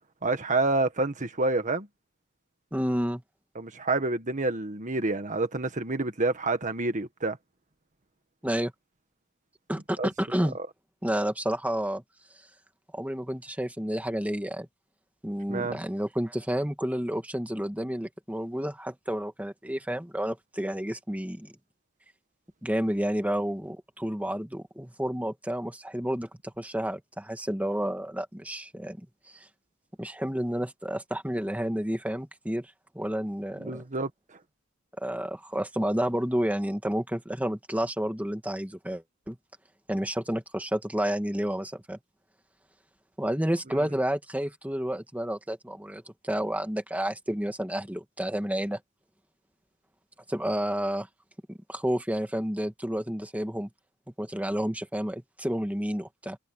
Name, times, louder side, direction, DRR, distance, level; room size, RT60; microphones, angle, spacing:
voice 1, 0.2-1.9 3.5-7.4 10.0-10.1 10.5-10.7 15.5-15.8 33.6-34.1 43.7-43.9, right 2 dB, 40° right, 1.6 m, -28 dB
voice 2, 2.7-3.2 8.4-8.7 9.7-10.6 11.0-12.0 12.9-14.7 15.2-21.5 22.6-29.0 30.0-32.7 33.0-33.8 35.0-39.4 39.9-42.0 43.2-48.8 50.3-51.1 51.5-53.7 54.2-56.4, equal, 5° right, 1.9 m, -30 dB
head